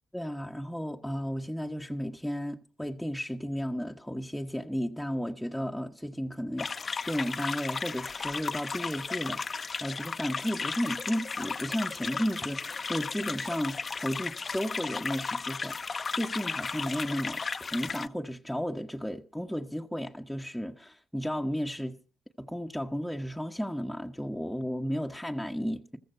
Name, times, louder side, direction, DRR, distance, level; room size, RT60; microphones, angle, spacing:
voice 1, 0.1-22.0 22.4-26.0, equal, ahead, 1.1 m, -34 dB
sound 1, 6.6-18.1, left 4 dB, 45° left, 0.8 m, -35 dB
14.5 x 14.0 x 5.5 m
supercardioid pair, 55°, 0 cm